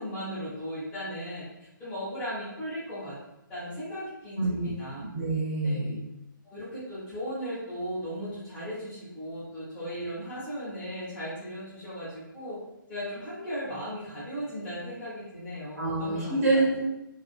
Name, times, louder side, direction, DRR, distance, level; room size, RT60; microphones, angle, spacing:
voice 1, 0.0-3.2 3.5-5.0 5.6-5.8 6.4-12.6 12.9-16.6, equal, 10° left, -12 dB, 0.8 m, -37 dB
voice 2, 4.4-4.8 5.1-6.0 15.8-16.9, right 2 dB, 40° right, -5 dB, 0.6 m, -26 dB
2.4 x 2.3 x 2.4 m, 0.91 s
figure-of-eight pair, 145°, 11 cm